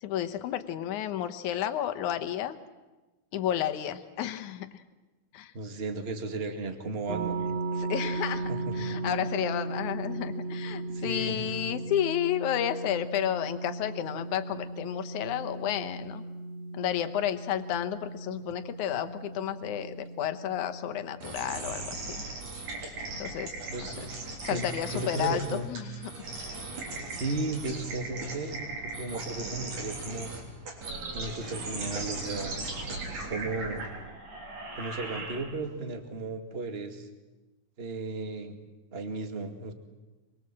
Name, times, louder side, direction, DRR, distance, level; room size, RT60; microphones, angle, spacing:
voice 1, 0.0-2.6 3.3-4.8 5.3-5.5 7.7-16.2 16.7-22.2 23.2-24.0 24.4-26.1 26.8-27.0, left 11 dB, 75° left, 9 dB, 2.5 m, -32 dB
voice 2, 5.5-7.4 8.5-8.8 10.9-11.4 23.7-24.1 24.4-25.7 27.1-30.3 31.1-32.6 33.1-33.9 34.8-37.1 37.8-38.6 38.9-39.7, right 3 dB, 25° right, 6 dB, 1.6 m, -35 dB
sound 1, 7.1-21.2, right 3 dB, 60° right, 2.7 m, -36 dB
sound 2, 21.2-35.7, right 2 dB, 75° right, 5.1 m, -38 dB
24.0 x 22.5 x 7.5 m, 1.1 s
omnidirectional pair, 3.5 m